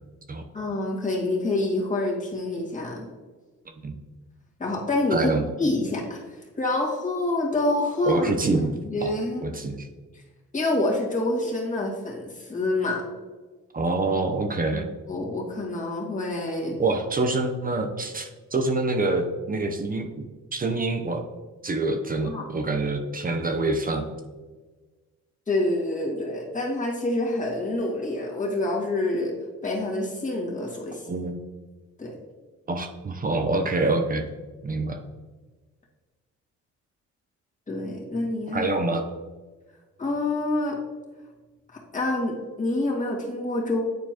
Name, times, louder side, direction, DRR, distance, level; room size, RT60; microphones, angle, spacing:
voice 1, 0.5-3.0 4.6-6.2 6.6-8.3 8.6-9.4 10.5-13.0 14.7-14.8 15.1-16.8 22.3-22.4 25.5-29.3 29.6-31.0 32.0-32.1 37.7-38.7 40.0-40.8 41.9-43.8, left 2 dB, 25° left, -3 dB, 2.0 m, -27 dB
voice 2, 5.1-5.5 8.0-9.1 9.4-9.9 13.7-14.9 16.8-20.2 20.5-21.2 21.6-24.1 31.1-31.4 32.7-34.2 34.6-35.0 38.5-39.1, right 2 dB, 30° right, 5 dB, 0.6 m, -26 dB
9.4 x 4.4 x 2.9 m, 1.3 s
cardioid pair, 90°, 30 cm